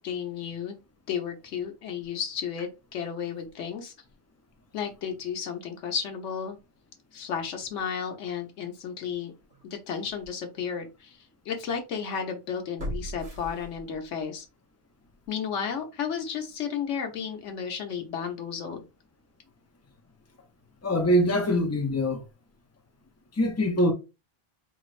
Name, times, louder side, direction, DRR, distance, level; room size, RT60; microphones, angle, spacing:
voice 1, 0.0-0.8 1.1-3.9 4.7-6.6 7.1-9.3 9.6-14.4 15.3-18.8, left 7 dB, 90° left, 1.1 m, -33 dB
sound 1, 9.5-9.6 10.2-10.3 12.8-14.2 14.6-14.7, equal, 80° right, 2.1 m, -37 dB
voice 2, 20.8-22.2 23.3-23.9, equal, 15° left, 0.6 m, -23 dB
4.4 x 3.1 x 2.5 m
omnidirectional pair, 1.2 m